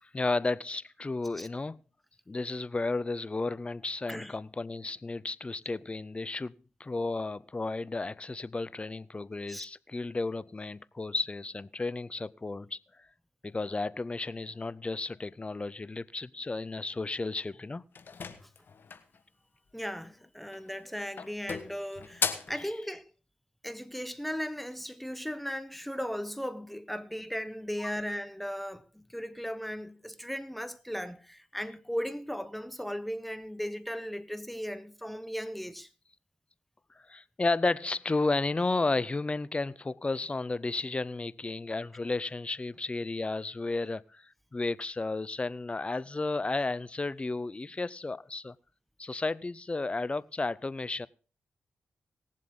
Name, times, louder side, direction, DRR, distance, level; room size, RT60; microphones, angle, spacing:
voice 1, 0.0-1.8 2.3-6.5 6.8-13.1 13.4-17.8 22.6-22.7 27.8-27.9 36.9-48.5 49.0-51.1, left 3 dB, 30° left, 0.6 m, -33 dB
sound 1, 17.9-19.2 20.4-20.8 21.2-22.6, left 5 dB, 60° left, 1.4 m, -35 dB
voice 2, 19.7-23.0 23.6-35.9, equal, ahead, 1.2 m, -37 dB
19.0 x 7.5 x 3.9 m
supercardioid pair, 45°, 4 cm